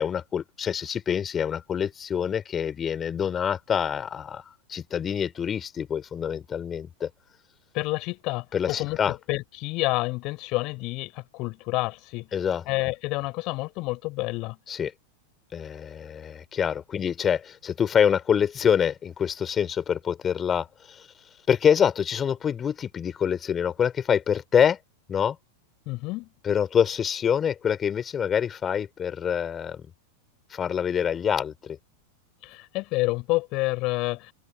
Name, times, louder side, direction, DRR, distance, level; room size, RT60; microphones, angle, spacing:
voice 1, 0.0-4.4 4.7-7.1 8.5-9.1 12.3-12.6 14.7-14.9 15.5-21.1 21.5-24.8 25.1-25.4 26.4-29.9 30.5-31.8, left 8 dB, 25° left, 3.7 m, -26 dB
voice 2, 7.7-12.3 12.7-14.6 25.9-26.3 32.4-34.3, left 23 dB, 40° left, 7.5 m, -29 dB
figure-of-eight pair, 90°, 0 cm